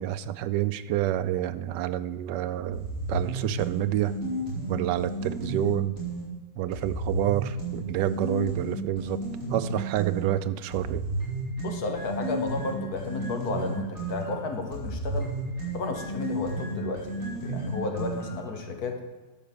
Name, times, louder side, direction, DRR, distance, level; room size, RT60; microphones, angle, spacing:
voice 1, 0.0-4.2 4.7-5.9 6.6-9.2 9.5-11.0, right 12 dB, 80° right, 12 dB, 1.2 m, -28 dB
sound 1, 2.7-6.3 6.7-10.3 10.7-18.5, right 2 dB, 45° right, 4.9 m, -33 dB
voice 2, 11.6-15.3 15.7-19.0, left 3 dB, 60° left, 4 dB, 1.7 m, -33 dB
12.5 x 5.3 x 6.9 m, 1.2 s
omnidirectional pair, 1.9 m